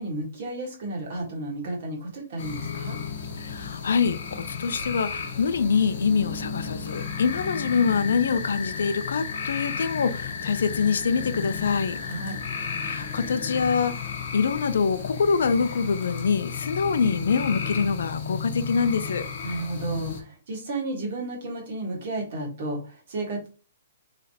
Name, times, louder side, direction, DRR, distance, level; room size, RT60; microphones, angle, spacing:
voice 1, 0.0-3.0 12.0-12.4 19.4-23.5, right 2 dB, 40° right, 1.4 m, -32 dB
sound 1, 2.4-20.2, left 6 dB, 45° left, 0.9 m, -33 dB
voice 2, 3.4-12.0 12.8-14.0 14.3-19.3, left 5 dB, 70° left, 0.4 m, -25 dB
4.0 x 3.2 x 2.8 m
hypercardioid pair, 180°, 0 cm